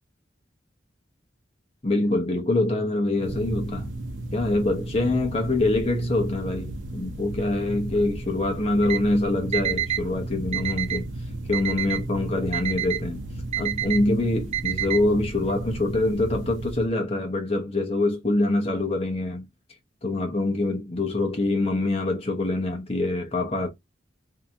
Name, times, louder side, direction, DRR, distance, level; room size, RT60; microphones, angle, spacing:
voice 1, 1.8-3.9 4.3-11.1 11.5-13.2 13.6-19.5 20.0-23.7, left 2 dB, 30° left, 0.8 m, -25 dB
sound 1, 3.2-16.9, right 1 dB, 80° right, 0.8 m, -34 dB
Alarm, 8.8-9.0 9.5-10.0 10.5-11.0 11.5-12.0 12.5-13.0 13.5-14.0 14.5-15.0, right 11 dB, 35° right, 0.4 m, -27 dB
2.8 x 2.7 x 3.4 m
head